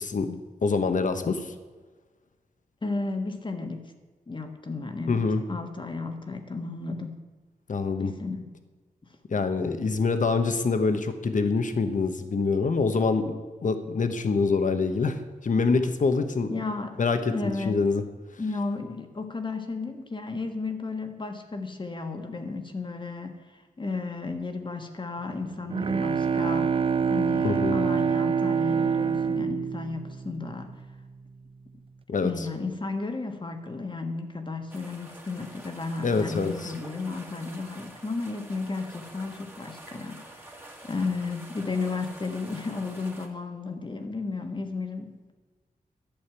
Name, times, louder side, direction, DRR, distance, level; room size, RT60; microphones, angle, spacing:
voice 1, 0.0-1.5 5.1-5.4 7.7-8.1 9.3-16.6 17.0-18.0 27.4-27.8 32.1-32.5 36.0-36.7, left 4 dB, 60° left, 8 dB, 1.2 m, -25 dB
voice 2, 2.8-3.9 4.3-7.2 8.0-8.5 16.5-17.0 17.3-17.9 18.4-26.8 27.1-30.8 32.2-45.3, left 3 dB, 30° left, 5 dB, 1.4 m, -33 dB
Bowed string instrument, 25.4-30.8, right 6 dB, 35° right, 0.4 m, -26 dB
sound 1, 34.7-43.3, right 1 dB, 15° right, 1.9 m, -47 dB
12.0 x 6.5 x 9.6 m, 1.3 s
wide cardioid pair, 115°, 15 cm